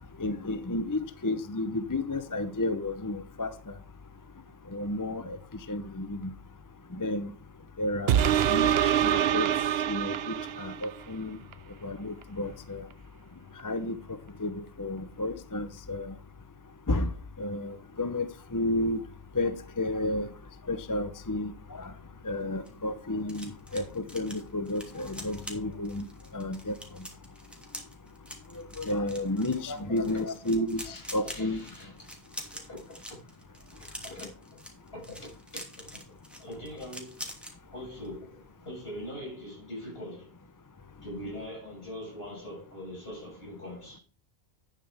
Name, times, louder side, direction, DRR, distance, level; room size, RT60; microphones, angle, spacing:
voice 1, 0.2-3.5 4.7-5.4 5.7-6.3 6.9-7.3 7.8-9.5 9.9-10.2 10.6-11.4 11.8-12.8 13.6-14.0 14.4-16.1 16.9-17.1 17.4-18.3 18.5-19.0 19.4-20.3 20.7-21.9 22.2-26.1 26.3-26.7 28.8-31.6, left 2 dB, 20° left, 0.7 m, -31 dB
sound 1, 8.1-11.0 11.5-11.6, right 10 dB, 75° right, 0.8 m, -25 dB
sound 2, 22.4-37.6 37.9-38.2 38.4-38.7, equal, ahead, 2.8 m, -45 dB
voice 2, 30.8-33.2 33.8-34.6 34.9-35.8 36.4-37.2 37.7-40.3 41.0-44.0, left 1 dB, 65° left, 7.2 m, -43 dB
11.0 x 9.3 x 3.5 m
omnidirectional pair, 1.1 m